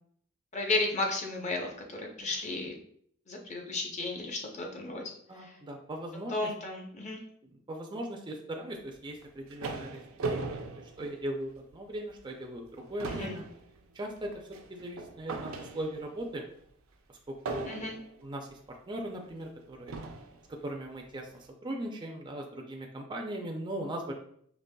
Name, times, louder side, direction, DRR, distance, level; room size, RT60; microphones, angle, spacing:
voice 1, 0.5-2.8 3.3-5.1 5.4-5.5 6.3-7.2 13.1-13.4 17.7-18.0, left 2 dB, 35° left, 1 dB, 0.7 m, -34 dB
voice 2, 5.3-6.5 7.7-13.4 13.9-14.3 14.7-16.4 17.5-17.9 18.2-19.9 20.6-24.1, right 1 dB, 20° right, 1 dB, 0.4 m, -39 dB
sound 1, 9.1-11.7 12.2-12.4 12.7-16.2 17.5-18.2 19.1-19.2 19.9-20.4, right 3 dB, 75° right, 0.5 m, -39 dB
5.2 x 2.9 x 2.2 m, 0.66 s
head